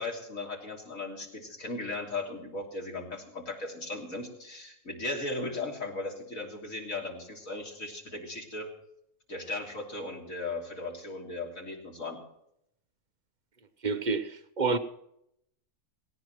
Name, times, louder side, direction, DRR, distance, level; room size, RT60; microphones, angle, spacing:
voice 1, 0.0-8.7 9.3-12.2, left 2 dB, 55° left, 3.4 m, -37 dB
voice 2, 13.8-14.8, right 4 dB, 40° right, 0.8 m, -28 dB
18.0 x 17.5 x 3.1 m
omnidirectional pair, 1.7 m